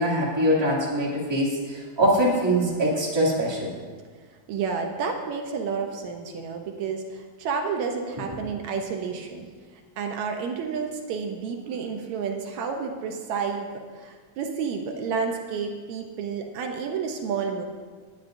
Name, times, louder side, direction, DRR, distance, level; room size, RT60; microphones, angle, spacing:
voice 1, 0.0-3.7, right 1 dB, 10° right, -6 dB, 2.1 m, -23 dB
voice 2, 4.5-9.5 10.0-17.7, right 5 dB, 75° right, 3 dB, 2.1 m, -30 dB
19.5 x 10.0 x 2.6 m, 1.5 s
omnidirectional pair, 3.3 m